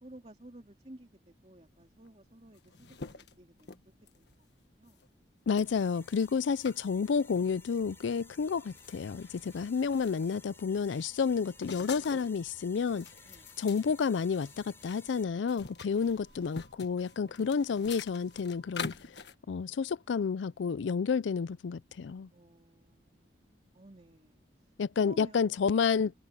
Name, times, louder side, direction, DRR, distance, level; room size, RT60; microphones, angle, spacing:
voice 1, 0.0-3.7 4.1-4.4 4.8-5.0 13.2-13.5 15.9-16.3 17.2-17.6 20.0-20.2 22.3-24.7 25.0-26.1, right 1 dB, 35° right, 2.7 m, -54 dB
sound 1, 2.1-2.2 2.3-4.3 4.9-5.1 5.6-6.8 7.3-7.5 8.1-8.2 8.5-10.4 10.8-12.4 12.8-15.0 15.3-19.3, left 5 dB, 70° left, 1.4 m, -46 dB
voice 2, 5.5-13.1 13.6-18.9 19.5-22.3 24.8-26.1, left 5 dB, 85° left, 0.4 m, -30 dB
sound 2, 5.6-15.2, left 3 dB, 15° left, 5.0 m, -57 dB
sound 3, 6.2-18.8, right 3 dB, 75° right, 7.0 m, -65 dB
head